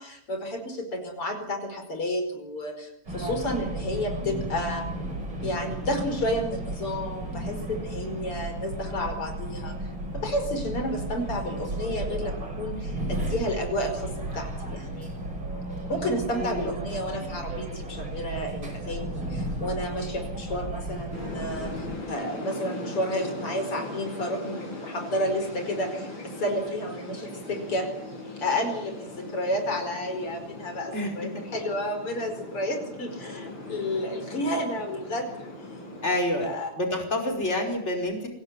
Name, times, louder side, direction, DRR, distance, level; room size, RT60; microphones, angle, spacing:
voice 1, 0.0-4.8 5.4-9.7 10.1-15.1 15.9-27.9 28.4-35.5 36.4-36.7, left 1 dB, 85° left, 6 dB, 5.9 m, -31 dB
sound 1, 3.0-22.0, right 1 dB, 70° right, 7.1 m, -34 dB
voice 2, 16.3-16.7 30.9-31.1 36.0-36.5 36.7-38.3, left 1 dB, 30° left, 3 dB, 5.6 m, -28 dB
sound 2, 21.1-36.2, left 2 dB, 60° left, 7.8 m, -39 dB
26.5 x 18.0 x 9.9 m, 0.79 s
omnidirectional pair, 2.4 m